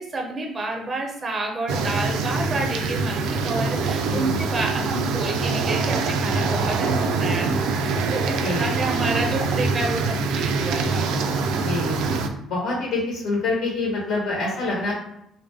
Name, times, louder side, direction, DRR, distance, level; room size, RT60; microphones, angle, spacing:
voice 1, 0.0-11.1, right 2 dB, 30° right, 2 dB, 0.5 m, -29 dB
sound 1, 1.7-12.3, right 4 dB, 80° right, 0.3 m, -24 dB
voice 2, 11.5-14.9, left 3 dB, 65° left, -3 dB, 1.0 m, -26 dB
3.5 x 2.2 x 3.3 m, 0.76 s
cardioid pair, 125°, 0 cm